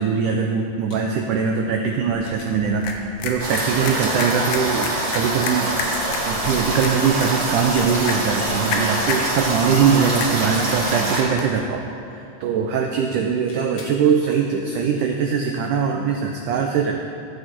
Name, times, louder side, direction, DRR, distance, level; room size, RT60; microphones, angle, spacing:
voice 1, 0.0-5.7 6.3-11.9 12.1-17.0, right 6 dB, 85° right, 2 dB, 1.8 m, -22 dB
sound 1, 0.9-1.1 2.2-2.5 4.1-4.3 5.0-5.2 7.6-8.2 10.6-11.1 13.5-14.0 16.3-16.4, left 3 dB, 70° left, 1.1 m, -43 dB
sound 2, 2.1-11.6, left 4 dB, 85° left, 3.0 m, -32 dB
sound 3, 3.4-11.2, right 2 dB, 40° right, 2.8 m, -25 dB
14.0 x 8.2 x 4.6 m, 2.7 s
omnidirectional pair, 4.4 m